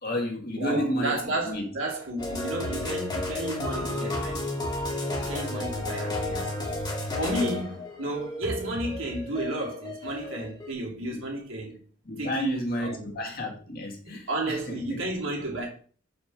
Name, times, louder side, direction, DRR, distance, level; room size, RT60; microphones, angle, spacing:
voice 1, 0.0-1.7 12.0-15.0, equal, 50° left, 1.8 m, -31 dB
voice 2, 0.5-4.4 5.2-6.5 7.2-11.8 12.2-13.1 14.0-15.7, right 1 dB, 75° right, 2.5 m, -32 dB
sound 1, 2.2-10.7, left 2 dB, 20° left, 1.7 m, -32 dB
5.3 x 4.4 x 6.0 m
head